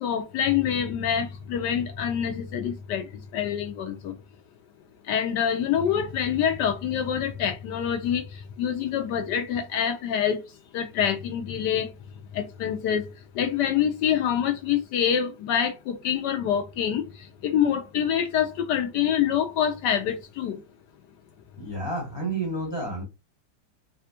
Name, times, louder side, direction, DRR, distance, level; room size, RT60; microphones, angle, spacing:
voice 1, 0.0-3.1 3.3-4.1 5.1-8.2 8.6-10.4 10.7-11.9 12.3-13.0 13.4-17.0 17.4-20.6, left 9 dB, 75° left, 1.1 m, -26 dB
voice 2, 21.6-23.0, right 2 dB, 15° left, 1.0 m, -30 dB
4.1 x 2.2 x 2.7 m
omnidirectional pair, 2.1 m